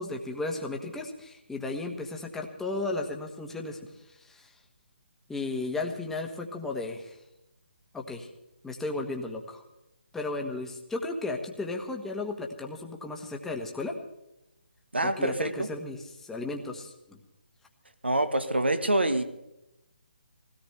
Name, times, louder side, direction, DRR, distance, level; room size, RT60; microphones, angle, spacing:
voice 1, 0.0-3.8 4.1-4.5 5.3-7.2 7.9-8.3 8.6-9.6 10.1-13.9 15.0-17.2, left 2 dB, 5° left, 2 dB, 1.4 m, -34 dB
voice 2, 14.9-15.7 18.0-19.2, right 1 dB, 80° right, 9 dB, 1.5 m, -26 dB
21.5 x 17.0 x 3.4 m, 0.90 s
figure-of-eight pair, 145°, 6 cm